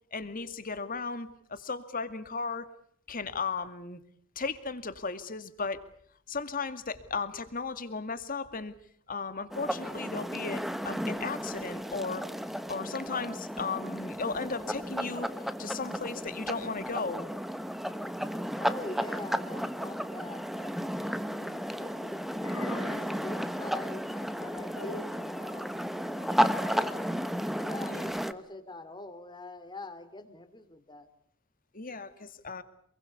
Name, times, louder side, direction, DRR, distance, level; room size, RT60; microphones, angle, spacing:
voice 1, 0.1-2.7 3.1-4.0 4.4-5.8 6.3-8.7 9.1-12.2 12.7-15.3 15.6-17.3 22.7-23.1 27.9-28.1 31.7-32.6, left 4 dB, 40° left, 11 dB, 2.2 m, -35 dB
sound 1, 9.5-28.3, equal, ahead, 1.3 m, -33 dB
voice 2, 18.6-22.2 22.5-27.2 27.5-31.1, left 2 dB, 20° left, 12 dB, 2.8 m, -45 dB
sound 2, 21.3-21.7 22.4-23.2 24.7-25.3, left 3 dB, 65° left, 5.6 m, -44 dB
28.0 x 22.5 x 8.3 m, 0.66 s
head